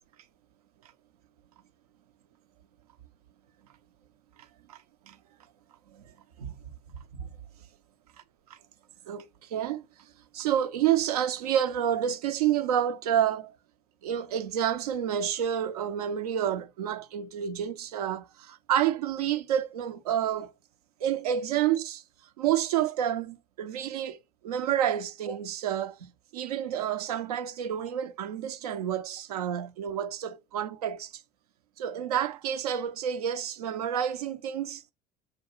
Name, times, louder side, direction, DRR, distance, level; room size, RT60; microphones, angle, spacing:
voice 1, 4.7-5.2 5.9-6.6 7.2-7.3 8.5-8.6 9.1-13.6 14.0-20.5 21.0-22.0 22.4-31.2 31.8-34.8, right 10 dB, 75° right, 0.5 m, -29 dB
6.7 x 2.3 x 3.0 m
hypercardioid pair, 65°, 20 cm